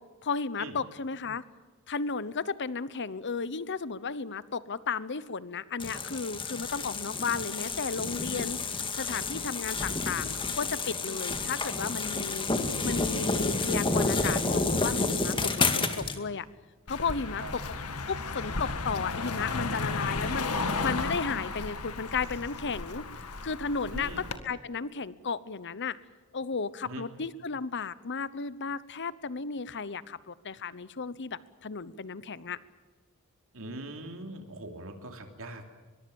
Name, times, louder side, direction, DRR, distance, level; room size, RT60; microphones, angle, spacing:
voice 1, 0.2-1.4 1.9-8.6 8.9-12.5 12.8-16.5 16.9-17.4 18.1-20.5 20.8-23.0 23.4-26.0 26.3-32.6, left 5 dB, 55° left, 17 dB, 1.0 m, -34 dB
sound 1, 5.8-16.2, left 3 dB, 25° left, 2.0 m, -30 dB
voice 2, 12.7-13.0 17.4-17.5 23.9-24.3 26.8-27.1 33.5-35.7, right 2 dB, 65° right, 5 dB, 3.0 m, -41 dB
Car passing by, 16.9-24.4, left 3 dB, 85° left, 2.0 m, -34 dB
23.0 x 22.5 x 7.2 m, 1.4 s
head